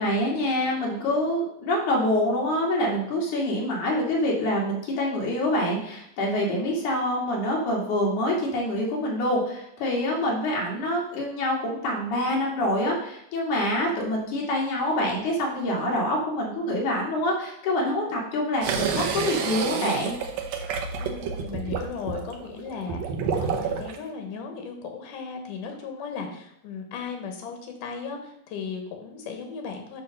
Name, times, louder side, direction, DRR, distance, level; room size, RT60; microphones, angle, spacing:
voice 1, 0.0-20.2, left 1 dB, 70° left, -2 dB, 3.5 m, -26 dB
sound 1, 18.6-24.0, right 6 dB, 70° right, 1.8 m, -29 dB
voice 2, 21.0-23.0 23.4-30.0, left 5 dB, 85° left, 4 dB, 2.9 m, -36 dB
9.4 x 3.4 x 6.4 m, 0.75 s
omnidirectional pair, 3.7 m